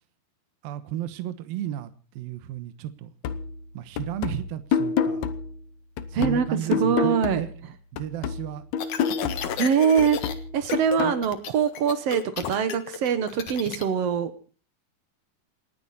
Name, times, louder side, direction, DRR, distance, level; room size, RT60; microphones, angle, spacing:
voice 1, 0.6-3.1 3.7-5.3 6.1-7.5 7.9-8.6 11.0-11.2, right 12 dB, 70° right, 10 dB, 2.8 m, -34 dB
sound 1, 3.2-7.7 8.0-11.2, left 6 dB, 85° left, 1.6 m, -29 dB
voice 2, 6.1-7.4 9.6-10.2 10.5-14.3, right 7 dB, 90° right, 10 dB, 1.3 m, -23 dB
sound 2, 8.8-10.3 10.6-11.0 11.2-13.8, left 8 dB, 60° left, 2.6 m, -32 dB
28.0 x 11.0 x 4.2 m, 0.38 s
omnidirectional pair, 4.7 m